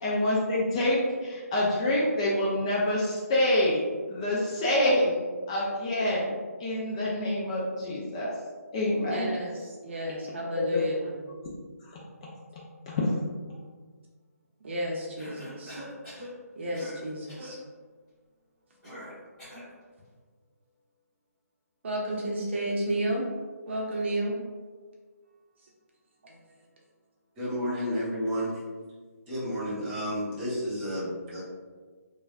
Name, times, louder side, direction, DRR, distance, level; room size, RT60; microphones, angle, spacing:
voice 1, 0.0-3.8 4.1-5.2 5.5-8.3 8.7-9.3 10.6-10.8 12.9-13.1, left 1 dB, 25° left, -5 dB, 0.3 m, -26 dB
voice 2, 9.1-11.2 14.6-15.7 16.6-17.6 21.8-23.3 23.7-24.4, equal, 45° right, -3 dB, 0.6 m, -31 dB
Cough, 15.2-16.3 16.7-17.0 17.3-17.5 18.8-19.7, equal, 5° left, 1.4 m, -43 dB
voice 3, 27.4-28.6 29.3-31.4, equal, 20° right, -9 dB, 1.0 m, -31 dB
3.3 x 2.2 x 2.5 m, 1.5 s
figure-of-eight pair, 150°, 9 cm